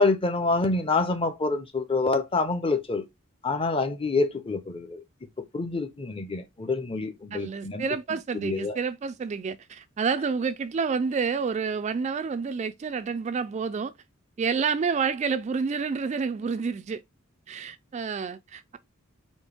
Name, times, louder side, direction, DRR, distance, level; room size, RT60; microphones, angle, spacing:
voice 1, 0.0-3.0 3.4-5.0 5.4-7.8 8.4-8.8, left 3 dB, 25° left, 0.7 m, -26 dB
voice 2, 7.3-13.9 14.4-17.0 17.5-18.8, right 5 dB, 35° right, 0.3 m, -29 dB
4.3 x 3.2 x 3.4 m
head